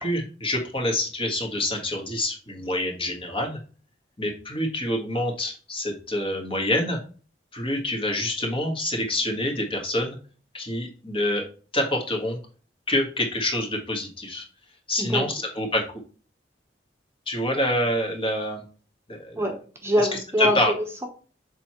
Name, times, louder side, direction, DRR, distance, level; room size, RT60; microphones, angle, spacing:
voice 1, 0.0-3.6 4.2-7.0 7.5-10.2 10.5-11.4 11.7-12.4 12.9-14.4 14.9-15.8 17.3-18.6 19.1-19.4 20.4-20.7, left 1 dB, 30° left, 2 dB, 1.7 m, -26 dB
voice 2, 19.4-21.1, equal, 15° right, 2 dB, 1.1 m, -25 dB
6.8 x 4.4 x 3.1 m, 0.38 s
head